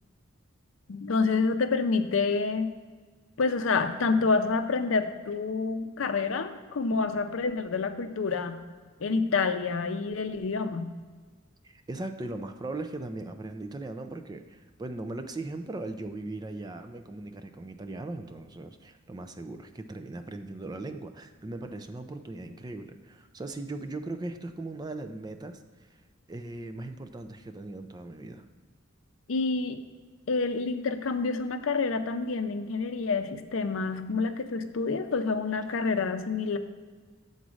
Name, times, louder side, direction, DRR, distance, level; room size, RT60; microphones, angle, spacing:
voice 1, 0.9-2.7 3.4-8.6 9.0-10.9 29.3-29.8 30.3-36.6, left 4 dB, 70° left, 8 dB, 0.5 m, -28 dB
voice 2, 11.6-26.0 26.3-28.4, right 2 dB, 20° right, 8 dB, 0.4 m, -39 dB
7.2 x 4.0 x 6.2 m, 1.4 s
head